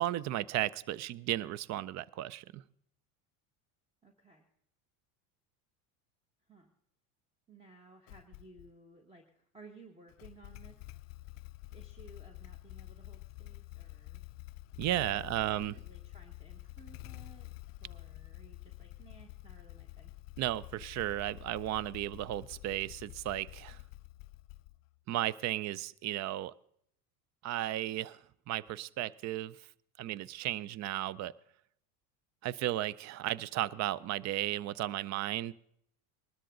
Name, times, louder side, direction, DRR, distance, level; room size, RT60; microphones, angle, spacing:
voice 1, 0.0-2.6 14.8-15.7 20.4-23.8 25.1-26.5 27.4-28.2 28.5-29.6 30.0-31.3 32.4-35.5, right 14 dB, 40° right, 22 dB, 0.5 m, -34 dB
voice 2, 4.0-4.5 6.5-6.7 7.5-10.8 11.7-14.2 15.0-17.5 17.8-20.1, right 2 dB, 15° right, 4 dB, 1.6 m, -57 dB
Motorcycle / Engine starting, 8.1-8.7 10.1-25.0, left 20 dB, 50° left, 0.5 m, -49 dB
20.5 x 13.0 x 3.9 m, 0.70 s
supercardioid pair, 105°, 46 cm